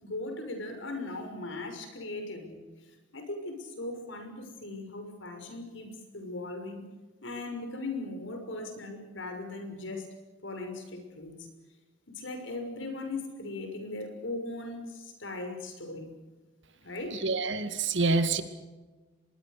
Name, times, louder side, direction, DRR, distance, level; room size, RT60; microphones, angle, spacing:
voice 1, 0.0-2.6 3.1-6.9 7.2-10.1 10.4-11.4 12.1-16.1 16.8-17.2, left 2 dB, 75° left, 6 dB, 6.2 m, -38 dB
voice 2, 17.2-18.4, right 3 dB, 70° right, 10 dB, 2.2 m, -26 dB
25.0 x 22.0 x 6.7 m, 1.3 s
head